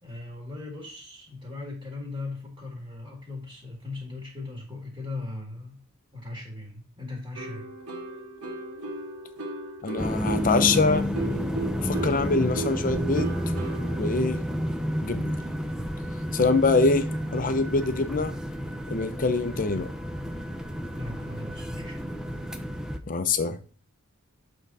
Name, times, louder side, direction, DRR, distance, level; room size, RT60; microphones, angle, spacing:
voice 1, 0.0-5.8 6.1-7.6 21.0-22.0, left 2 dB, 20° right, -1 dB, 1.9 m, -38 dB
sound 1, 7.3-14.1, right 2 dB, 80° right, 2.0 m, -36 dB
voice 2, 9.8-11.1 11.8-13.3 14.0-14.4 15.0-15.3 16.3-18.3 18.9-19.9 23.1-23.6, left 3 dB, 40° left, 10 dB, 0.7 m, -24 dB
sound 2, 10.0-23.0, equal, 5° right, 0.6 m, -30 dB
7.5 x 3.8 x 4.0 m, 0.40 s
head